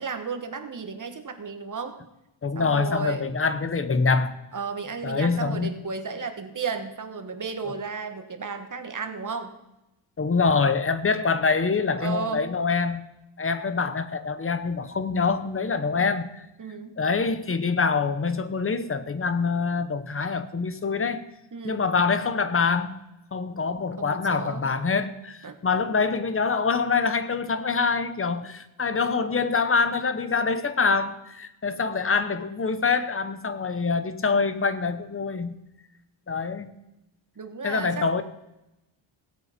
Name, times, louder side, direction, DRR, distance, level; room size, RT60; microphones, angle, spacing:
voice 1, 0.0-2.0 2.5-3.3 4.5-9.5 12.0-12.5 16.6-16.9 21.5-21.8 24.0-24.7 25.4-25.6 37.4-38.1, right 5 dB, 40° right, 7 dB, 1.5 m, -33 dB
voice 2, 2.4-4.4 5.0-5.8 7.7-7.8 10.2-13.0 13.4-16.5 17.0-21.2 21.6-23.0 23.3-35.6 36.3-36.8 37.6-38.2, left 4 dB, 25° left, 12 dB, 1.0 m, -25 dB
17.5 x 8.4 x 5.2 m, 0.90 s
wide cardioid pair, 120°, 49 cm